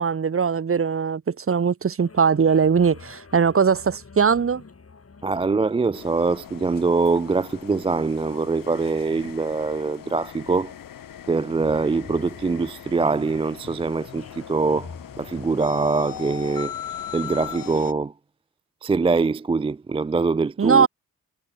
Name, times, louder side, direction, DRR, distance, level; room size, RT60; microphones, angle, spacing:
voice 1, 0.0-4.6 20.6-20.9, right 6 dB, 40° right, 1.0 m, -20 dB
sound 1, 2.0-17.4, left 4 dB, 45° left, 4.0 m, -48 dB
voice 2, 5.2-10.7 11.3-16.7 17.1-18.1 18.8-20.9, right 4 dB, 15° right, 0.3 m, -23 dB
sound 2, 5.9-17.9, left 10 dB, 75° left, 1.1 m, -39 dB
cardioid pair, 60°, 34 cm